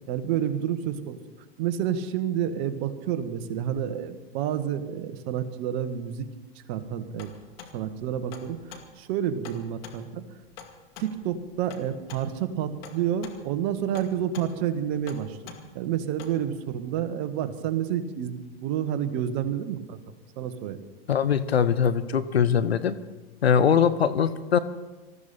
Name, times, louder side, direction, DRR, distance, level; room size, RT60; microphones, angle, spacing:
voice 1, 0.1-1.2 1.6-6.3 6.7-7.3 7.7-8.6 9.0-10.2 11.0-18.4 18.6-20.0 20.4-20.8, right 9 dB, 50° right, 9 dB, 1.5 m, -29 dB
sound 1, 6.9-16.5, left 6 dB, 65° left, 2.3 m, -47 dB
voice 2, 21.1-23.0 23.4-24.6, left 7 dB, 90° left, 13 dB, 1.0 m, -22 dB
20.0 x 14.5 x 4.3 m, 1.2 s
hypercardioid pair, 100°, 30 cm